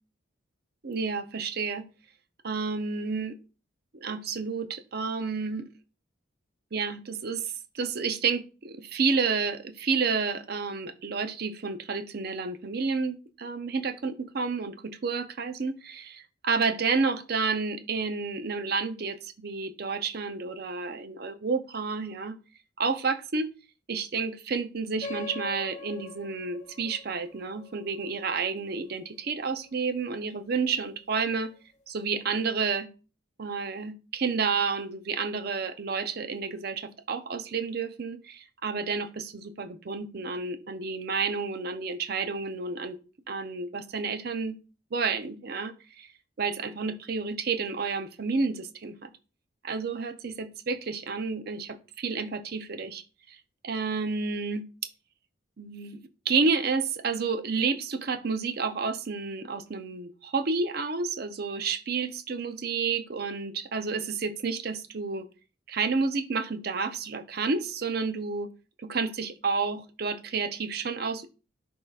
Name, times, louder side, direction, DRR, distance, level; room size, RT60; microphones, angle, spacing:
voice 1, 0.8-1.9 2.4-3.4 3.9-5.7 6.7-22.4 22.8-23.5 23.9-31.5 31.9-32.9 33.4-43.0 43.3-44.6 44.9-46.1 46.4-49.1 49.6-54.7 55.6-56.0 56.3-65.3 65.7-68.5 68.8-71.3, right 4 dB, 50° right, 9 dB, 0.6 m, -30 dB
sound 1, 25.0-30.0, left 3 dB, 35° left, 0.6 m, -43 dB
10.5 x 3.8 x 2.4 m, 0.33 s
head